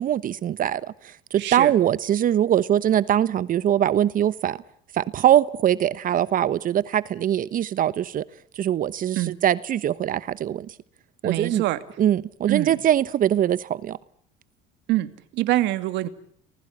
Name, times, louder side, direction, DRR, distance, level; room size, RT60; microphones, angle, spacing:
voice 1, 0.0-4.6 4.9-8.2 8.6-10.7 11.2-11.6 12.0-14.0, right 11 dB, 45° right, 1.1 m, -22 dB
voice 2, 1.4-1.7 9.2-9.3 11.2-11.8 12.5-12.8 14.9-16.1, right 16 dB, 70° right, 2.4 m, -25 dB
29.5 x 20.5 x 8.6 m
supercardioid pair, 100°, 19 cm